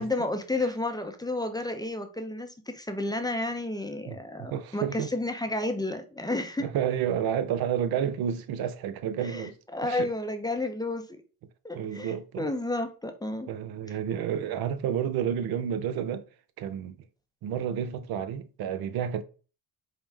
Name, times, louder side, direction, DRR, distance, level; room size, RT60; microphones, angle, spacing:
voice 1, 0.0-6.7 9.2-11.2 11.6-13.5, left 2 dB, 10° left, 0.6 m, -31 dB
voice 2, 4.1-5.1 6.6-9.5 9.8-10.1 11.7-12.5 13.5-16.3 16.6-17.0 17.4-19.2, right 9 dB, 65° right, 0.6 m, -30 dB
4.8 x 2.0 x 3.3 m
supercardioid pair, 70°, 41 cm